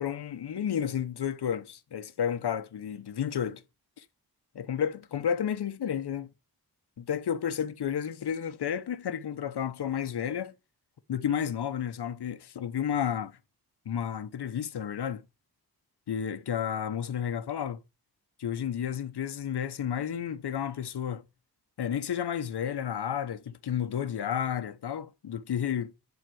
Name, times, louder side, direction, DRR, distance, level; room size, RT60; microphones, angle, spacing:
voice 1, 0.0-3.6 4.0-4.1 4.5-6.3 7.0-10.5 11.1-13.4 13.8-15.2 16.1-17.8 18.4-21.2 21.8-25.9, left 8 dB, 80° left, 1.1 m, -31 dB
11.0 x 4.1 x 6.3 m
cardioid pair, 80°, 39 cm